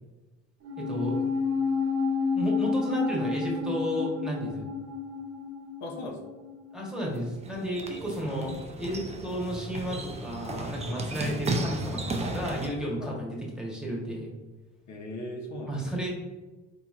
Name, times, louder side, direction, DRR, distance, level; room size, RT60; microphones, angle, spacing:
sound 1, 0.6-7.2 7.5-7.6, left 5 dB, 60° right, 0.8 m, -30 dB
voice 1, 0.8-1.3 2.3-4.7 6.7-14.3 15.7-16.1, equal, ahead, -3 dB, 1.1 m, -33 dB
voice 2, 5.8-6.3 8.2-8.7 11.2-11.4 13.0-13.1 14.9-16.0, left 1 dB, 65° left, 1 dB, 0.7 m, -39 dB
sound 2, 7.1-12.7, right 2 dB, 20° right, 0.5 m, -34 dB
3.9 x 2.9 x 2.4 m, 1.2 s
cardioid pair, 90°, 30 cm